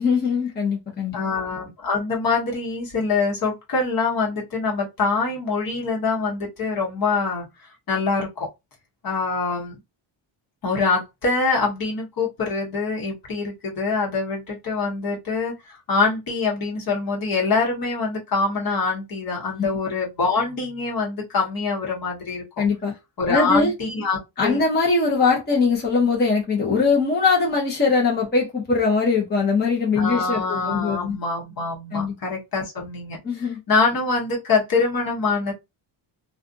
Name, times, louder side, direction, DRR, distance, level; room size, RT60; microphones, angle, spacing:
voice 1, 0.0-1.1 19.6-19.7 22.6-22.9 23.3-23.7 24.4-31.2 31.9-32.1 33.2-33.6, left 4 dB, 20° left, 0.8 m, -21 dB
voice 2, 1.1-7.4 7.9-8.5 9.0-9.8 10.6-22.4 23.2-24.6 30.0-35.5, left 4 dB, 45° left, 1.2 m, -24 dB
2.5 x 2.4 x 2.4 m
cardioid pair, 130°, 48 cm